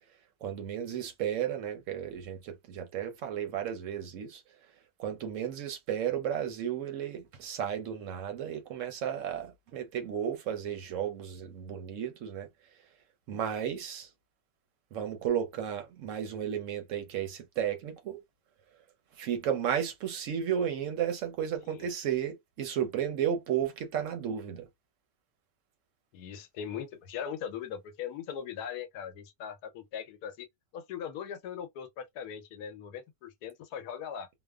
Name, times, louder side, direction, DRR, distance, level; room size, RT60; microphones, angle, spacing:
voice 1, 0.4-4.4 5.0-12.5 13.3-14.1 14.9-18.2 19.2-24.7, right 9 dB, 65° right, 0.8 m, -33 dB
voice 2, 26.1-30.5 30.7-34.3, left 8 dB, 80° left, 1.1 m, -40 dB
2.8 x 2.1 x 2.2 m
omnidirectional pair, 1.7 m